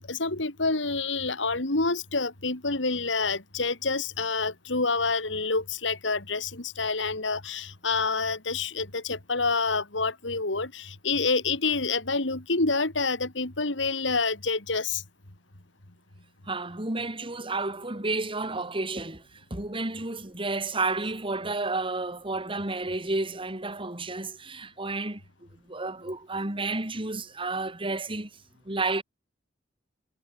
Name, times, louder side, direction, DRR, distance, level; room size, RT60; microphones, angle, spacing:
voice 1, 0.0-15.0, left 3 dB, 75° left, 2.8 m, -28 dB
voice 2, 16.5-28.3 28.6-29.0, right 3 dB, 30° right, 3.1 m, -31 dB
head